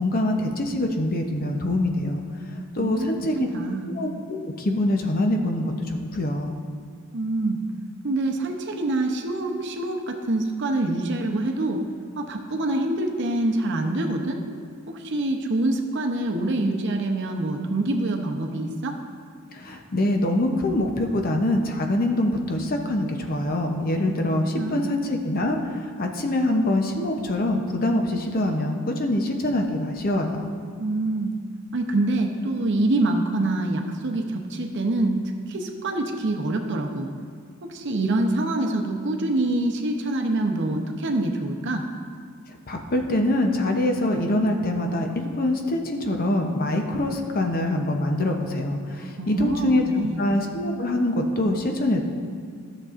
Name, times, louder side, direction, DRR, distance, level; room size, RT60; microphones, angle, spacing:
voice 1, 0.0-2.2 2.7-3.5 3.9-6.5 19.5-30.5 42.7-49.8 50.2-52.0, left 1 dB, 40° left, 3 dB, 0.7 m, -24 dB
voice 2, 2.8-3.1 3.3-3.9 7.1-7.6 8.0-11.8 12.2-14.4 14.9-18.9 24.0-24.1 24.5-24.9 30.8-31.3 31.7-35.2 35.5-37.1 37.6-41.8 49.2-50.2, right 2 dB, 55° right, 3 dB, 0.7 m, -25 dB
13.0 x 6.7 x 2.5 m, 2.1 s
head